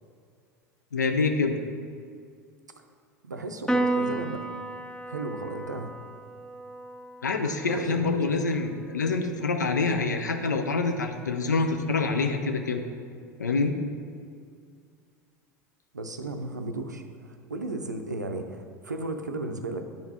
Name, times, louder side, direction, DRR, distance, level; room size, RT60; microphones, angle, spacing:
voice 1, 0.9-1.6 7.2-12.8 13.4-13.7, left 4 dB, 80° left, 5 dB, 0.4 m, -26 dB
voice 2, 3.2-4.5 5.1-5.9 7.7-8.2 15.9-19.9, right 2 dB, 80° right, 6 dB, 0.4 m, -35 dB
Piano, 3.7-10.4, right 2 dB, 5° left, 0.4 m, -34 dB
10.0 x 3.9 x 2.8 m, 2.2 s
figure-of-eight pair, 75°, 9 cm